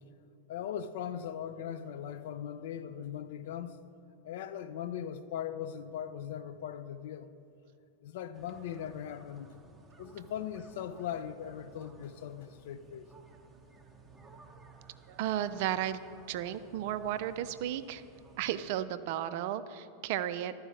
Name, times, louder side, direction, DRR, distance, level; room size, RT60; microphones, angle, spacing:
voice 1, 0.5-3.8 4.2-7.3 8.0-9.5 10.0-13.1, left 9 dB, 55° left, 0.4 m, -39 dB
sound 1, 8.3-18.7, right 3 dB, 10° right, 0.8 m, -57 dB
voice 2, 15.1-16.0 16.3-18.0 18.4-20.5, right 11 dB, 50° right, 0.4 m, -34 dB
12.0 x 4.7 x 6.2 m
figure-of-eight pair, 90°, 0 cm